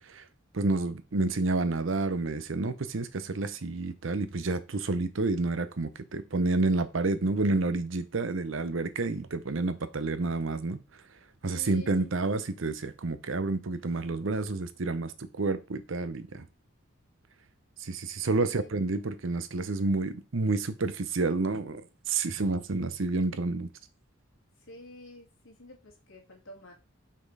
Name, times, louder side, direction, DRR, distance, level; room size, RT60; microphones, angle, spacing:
voice 1, 0.5-10.8 11.4-16.5 17.8-23.7, right 3 dB, 70° right, 0.7 m, -29 dB
voice 2, 11.4-12.1 18.3-19.0 19.7-20.1 24.7-26.7, left 1 dB, 85° left, 2.5 m, -49 dB
5.6 x 4.4 x 4.7 m
head